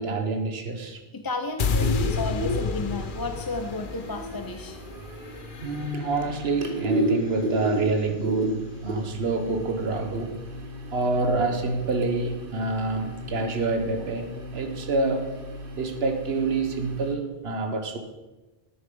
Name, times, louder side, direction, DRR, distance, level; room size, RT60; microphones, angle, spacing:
voice 1, 0.0-1.0 5.6-10.4 10.9-15.4 15.8-18.0, right 3 dB, 70° right, 1.4 m, -27 dB
voice 2, 1.1-4.8, left 3 dB, 25° left, 0.5 m, -33 dB
sound 1, 1.6-7.8, left 5 dB, 55° left, 0.8 m, -31 dB
sound 2, 1.8-17.2, right 1 dB, 55° right, 1.5 m, -33 dB
10.0 x 8.9 x 5.3 m
omnidirectional pair, 1.1 m